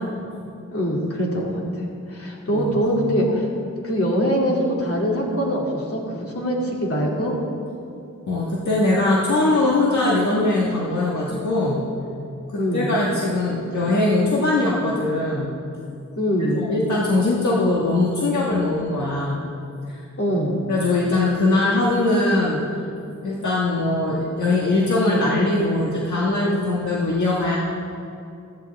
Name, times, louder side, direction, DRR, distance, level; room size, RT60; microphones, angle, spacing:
voice 1, 0.7-3.5 3.8-7.3 12.6-12.9 16.1-16.6 20.2-20.6, equal, 50° left, -3 dB, 2.7 m, -23 dB
voice 2, 2.5-3.0 8.3-11.8 12.5-15.6 16.5-19.5 19.9-20.0 20.7-22.6 23.2-27.6, left 2 dB, 65° left, -5 dB, 1.6 m, -21 dB
15.5 x 14.0 x 3.5 m, 2.6 s
wide cardioid pair, 90°, 31 cm